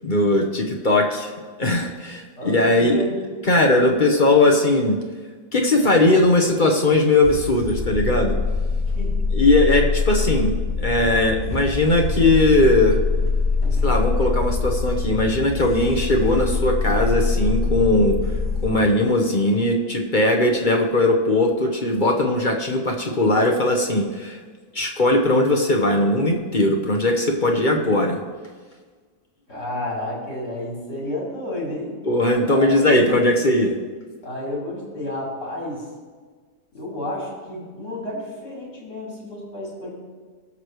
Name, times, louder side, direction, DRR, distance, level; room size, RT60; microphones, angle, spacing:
voice 1, 0.0-1.3 1.6-3.0 3.4-5.0 5.5-8.4 9.3-13.0 13.8-18.2 18.6-24.4 24.7-28.2 32.0-33.8, left 2 dB, 35° left, 2 dB, 1.0 m, -19 dB
voice 2, 2.4-3.1 8.9-9.2 13.6-13.9 29.5-31.9 32.4-33.1 34.2-35.8 36.7-39.9, left 1 dB, 75° left, -5 dB, 4.3 m, -31 dB
sound 1, 7.2-18.7, left 4 dB, 15° left, 0.5 m, -24 dB
20.0 x 6.7 x 3.1 m, 1.5 s
omnidirectional pair, 1.7 m